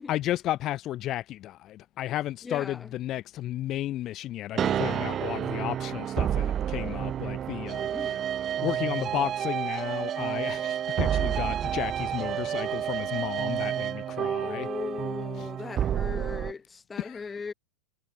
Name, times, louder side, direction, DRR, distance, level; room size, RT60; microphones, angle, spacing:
voice 1, 0.0-8.2 8.6-14.7 15.4-15.5 17.0-17.4, left 14 dB, 35° left, 4.0 m, -33 dB
voice 2, 2.4-2.9 7.9-8.3 14.4-17.5, left 5 dB, 15° left, 6.0 m, -38 dB
sound 1, 4.5-16.5, right 10 dB, 25° right, 2.0 m, -30 dB
figure-of-eight pair, 90°, 0 cm